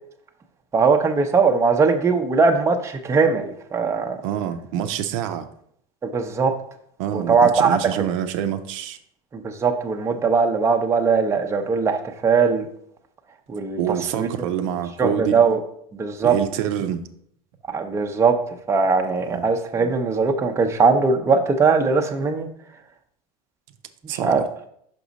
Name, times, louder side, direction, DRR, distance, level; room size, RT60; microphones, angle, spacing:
voice 1, 0.7-4.2 6.0-6.5 7.1-8.1 9.3-12.6 13.5-13.8 14.1-14.3 15.0-15.6 16.0-16.4 17.7-18.4 18.7-22.5 24.2-24.4, right 5 dB, 15° right, 4 dB, 0.6 m, -20 dB
voice 2, 4.2-5.5 7.0-9.0 13.8-15.4 16.2-17.0 19.3-19.5 24.1-24.5, right 9 dB, 70° right, 8 dB, 0.6 m, -26 dB
6.0 x 4.9 x 4.0 m, 0.69 s
supercardioid pair, 125°, 17 cm